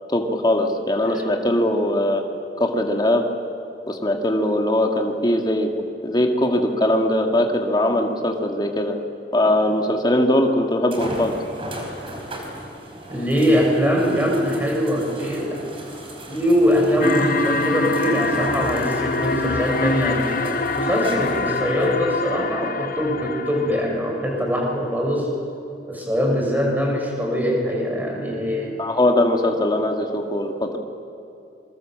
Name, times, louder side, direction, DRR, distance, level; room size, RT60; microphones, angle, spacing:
voice 1, 0.1-2.2 2.6-3.2 3.9-5.7 6.0-9.0 9.3-11.3 28.8-30.8, left 1 dB, 25° left, 3 dB, 2.0 m, -20 dB
sound 1, 9.8-9.9 10.9-21.9 22.7-22.8 26.2-26.3, right 1 dB, 30° right, 4.7 m, -37 dB
voice 2, 13.1-15.6 16.2-25.3 25.9-28.8, equal, 10° right, -1 dB, 6.0 m, -22 dB
sound 2, 17.0-24.2, left 3 dB, 50° left, 1.2 m, -25 dB
27.5 x 23.0 x 7.6 m, 2.6 s
head